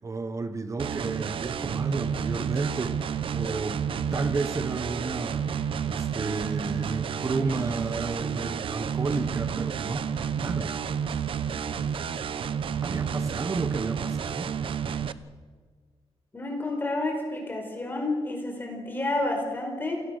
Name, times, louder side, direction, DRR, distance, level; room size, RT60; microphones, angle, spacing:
voice 1, 0.0-5.5 5.8-10.1 10.3-10.7 12.8-14.5, right 3 dB, 30° right, 11 dB, 1.1 m, -32 dB
sound 1, 0.8-15.1, right 7 dB, 60° right, 0.8 m, -30 dB
voice 2, 16.3-20.0, left 2 dB, 20° left, 2 dB, 4.8 m, -30 dB
27.5 x 18.0 x 6.5 m, 1.5 s
wide cardioid pair, 155°, 10 cm